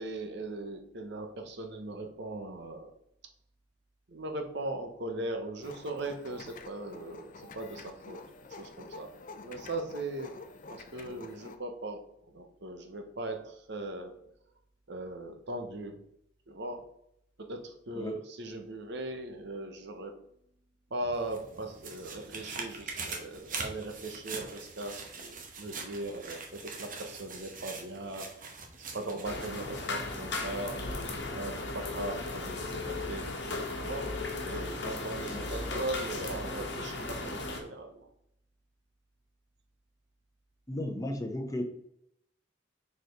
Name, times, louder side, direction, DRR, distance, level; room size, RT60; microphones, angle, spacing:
voice 1, 0.0-2.9 4.1-8.2 8.5-9.1 9.4-14.2 14.9-16.0 16.5-16.9 17.4-20.2 20.9-28.3 28.9-30.8 31.3-33.3 33.7-34.1 34.4-38.1, right 2 dB, 60° right, 5 dB, 1.0 m, -39 dB
sound 1, 5.6-11.6, left 3 dB, 45° left, 0.6 m, -48 dB
sound 2, 21.1-29.9 30.3-30.4, right 4 dB, 45° right, 1.1 m, -43 dB
sound 3, 29.2-37.6, left 2 dB, 60° left, 1.2 m, -36 dB
voice 2, 40.7-41.6, left 1 dB, 20° left, 4 dB, 0.8 m, -35 dB
4.8 x 4.3 x 5.2 m, 0.74 s
head